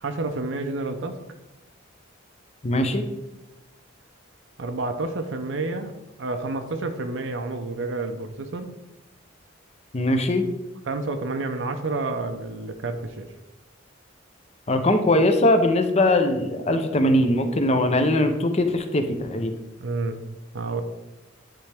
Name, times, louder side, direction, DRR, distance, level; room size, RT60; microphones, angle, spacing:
voice 1, 0.0-1.2 4.6-5.9 6.2-8.7 10.9-13.3 19.8-20.8, right 3 dB, 65° right, 6 dB, 0.5 m, -29 dB
voice 2, 2.6-3.0 9.9-10.5 14.7-19.5, left 1 dB, 30° left, 7 dB, 0.6 m, -21 dB
10.0 x 3.4 x 3.4 m, 1.0 s
head